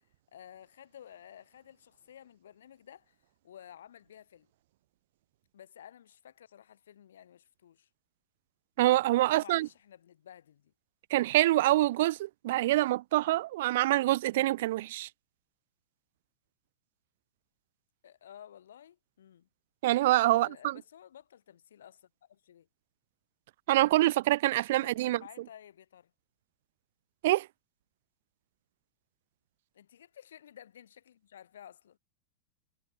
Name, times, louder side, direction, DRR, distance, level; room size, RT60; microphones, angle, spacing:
voice 1, 0.3-3.2 3.4-4.5 5.5-7.9 9.2-10.7 18.0-19.5 20.3-22.7 24.7-26.1 29.7-32.0, left 10 dB, 90° left, 2.4 m, -53 dB
voice 2, 8.8-9.7 11.1-15.1 19.8-20.7 23.7-25.2 27.2-27.5, right 16 dB, 65° right, 0.3 m, -25 dB
supercardioid pair, 140°, 0 cm